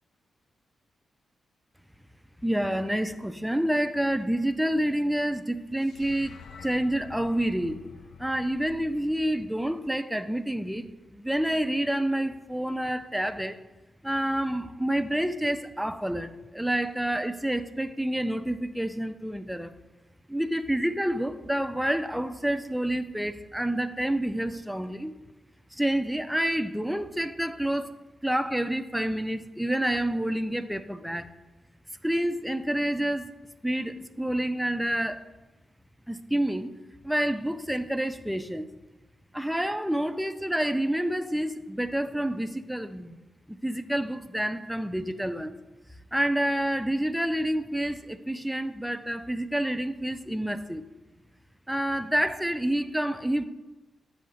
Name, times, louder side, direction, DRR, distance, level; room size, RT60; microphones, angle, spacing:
voice 1, 2.4-7.8 8.2-13.6 14.0-19.7 20.3-25.1 25.7-27.9 28.2-31.3 32.0-33.4 33.6-35.3 36.1-36.7 37.0-38.7 39.3-43.2 43.5-45.6 46.1-50.8 51.7-53.4, right 1 dB, 5° right, 10 dB, 0.4 m, -28 dB
sound 1, 5.8-10.2, left 6 dB, 75° left, 0.4 m, -49 dB
7.6 x 2.8 x 5.6 m, 1.1 s
cardioid pair, 80°, 0 cm